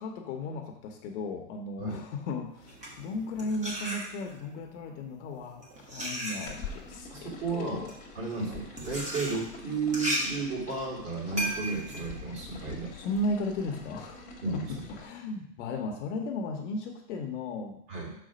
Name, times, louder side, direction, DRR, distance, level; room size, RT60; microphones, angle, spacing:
voice 1, 0.0-7.9 12.9-14.3 14.5-17.8, left 2 dB, 50° left, 4 dB, 1.0 m, -35 dB
sound 1, 2.6-4.5 5.3-13.2, right 1 dB, 15° right, 1.2 m, -36 dB
sound 2, 6.5-15.0, left 4 dB, 15° left, 0.9 m, -46 dB
voice 2, 7.1-7.9 8.1-12.9 14.4-14.7 17.9-18.1, right 4 dB, 35° right, -3 dB, 2.6 m, -33 dB
6.2 x 4.2 x 5.0 m, 0.79 s
supercardioid pair, 155°, 47 cm